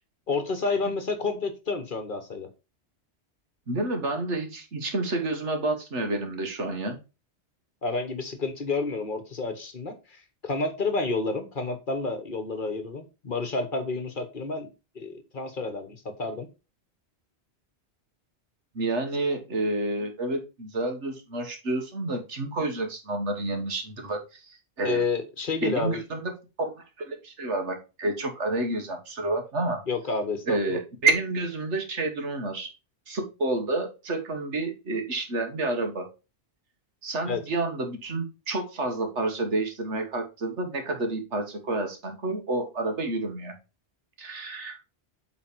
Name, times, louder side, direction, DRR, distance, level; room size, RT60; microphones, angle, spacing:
voice 1, 0.3-2.5 7.8-14.7 14.9-16.5 24.8-26.0 29.9-30.8 37.3-37.4, left 3 dB, 50° left, 8 dB, 1.3 m, -30 dB
voice 2, 3.7-7.0 18.8-25.0 25.6-26.3 26.6-29.8 30.5-32.7 33.1-36.1 37.0-43.5 44.2-44.8, right 2 dB, 85° right, 5 dB, 1.8 m, -29 dB
8.5 x 4.0 x 4.5 m, 0.29 s
omnidirectional pair, 1.2 m